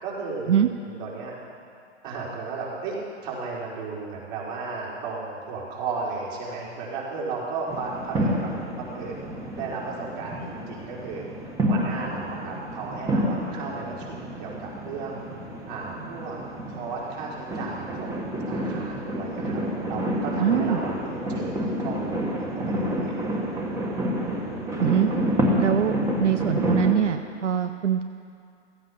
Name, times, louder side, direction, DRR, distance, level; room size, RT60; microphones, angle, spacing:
voice 1, 0.0-1.3 2.0-3.0 3.2-8.5 8.8-9.2 9.5-11.2 11.7-15.2 15.7-16.4 16.7-23.1, right 4 dB, 45° right, -5 dB, 4.7 m, -34 dB
sound 1, 7.7-27.0, equal, 10° right, 1.5 m, -29 dB
voice 2, 20.4-20.8 24.8-25.1 25.6-25.9 26.2-28.0, right 9 dB, 85° right, 9 dB, 0.7 m, -23 dB
16.0 x 15.0 x 5.7 m, 2.3 s
hypercardioid pair, 145°, 36 cm